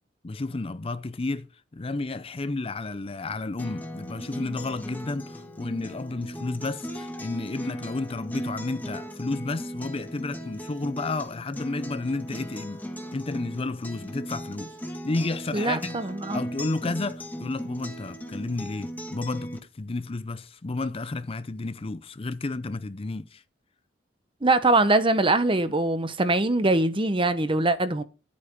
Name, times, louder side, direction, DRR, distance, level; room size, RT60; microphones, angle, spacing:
voice 1, 0.2-1.5 1.7-12.8 13.1-14.7 15.0-16.0 16.3-23.4, left 3 dB, 30° left, 0.5 m, -31 dB
Acoustic guitar, 3.6-19.6, equal, 10° left, 1.6 m, -37 dB
voice 2, 15.5-16.4 24.4-28.0, right 2 dB, 25° right, 0.9 m, -22 dB
12.0 x 8.5 x 4.8 m
head